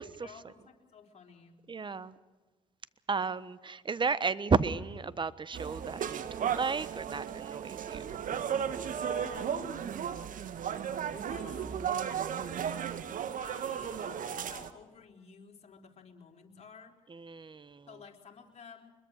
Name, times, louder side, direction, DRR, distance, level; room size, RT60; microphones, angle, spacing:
voice 1, 0.2-1.6 9.0-10.0 11.2-11.9 13.4-17.0 17.9-18.9, left 5 dB, 40° left, 1 dB, 4.2 m, -52 dB
voice 2, 1.7-2.1 3.1-8.2 17.1-17.9, right 4 dB, 30° right, 16 dB, 1.3 m, -33 dB
sound 1, 5.5-14.7, right 8 dB, 55° right, 1.6 m, -35 dB
Brass instrument, 5.6-9.8, right 11 dB, 75° right, 3.2 m, -46 dB
24.0 x 22.0 x 6.7 m, 1.3 s
hypercardioid pair, 55°, 16 cm